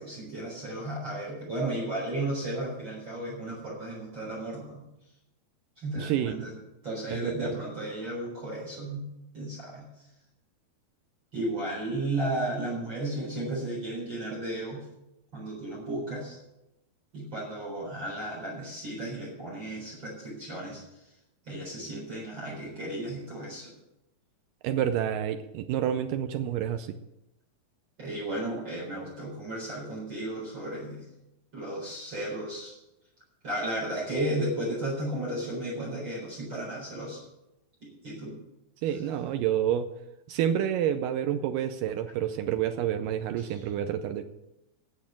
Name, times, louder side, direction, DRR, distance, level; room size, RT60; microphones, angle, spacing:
voice 1, 0.0-4.8 5.8-6.5 6.8-9.1 9.3-9.9 11.3-14.8 15.3-16.4 17.1-20.8 21.5-23.7 28.0-31.1 31.5-32.7 33.4-37.2 37.8-38.4 43.4-43.6, right 1 dB, 30° right, -6 dB, 4.6 m, -34 dB
voice 2, 5.9-6.4 7.1-7.5 24.6-26.9 38.8-39.9 40.3-44.3, right 10 dB, 90° right, 8 dB, 1.9 m, -29 dB
10.5 x 7.2 x 8.9 m, 0.90 s
omnidirectional pair, 4.5 m